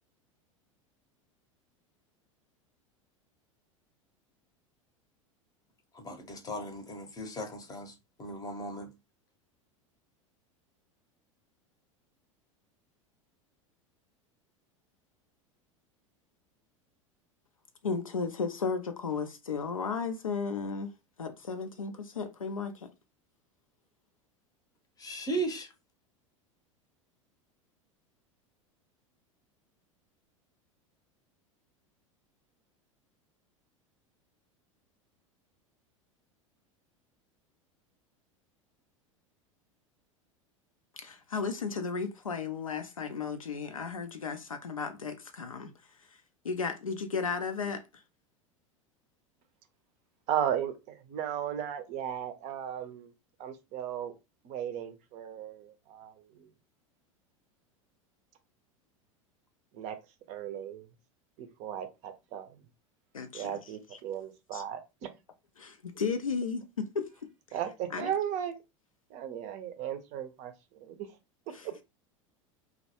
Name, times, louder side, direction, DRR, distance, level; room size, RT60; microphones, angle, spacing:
voice 1, 5.9-7.9 8.2-8.9 25.0-25.7, right 2 dB, 20° left, 0.7 m, -36 dB
voice 2, 17.8-20.9 21.2-22.9 41.0-45.7 46.4-47.8 63.1-63.6 64.5-64.6 65.6-67.1 67.9-68.1 71.5-71.8, left 5 dB, 90° left, 0.4 m, -34 dB
voice 3, 50.3-53.1 53.4-54.1 54.4-56.5 59.7-60.0 60.3-60.9 61.4-62.5 63.3-65.1 67.5-68.6 69.1-71.1 71.6-71.7, right 10 dB, 45° right, 0.5 m, -36 dB
2.1 x 2.0 x 2.8 m
figure-of-eight pair, 80°, 17 cm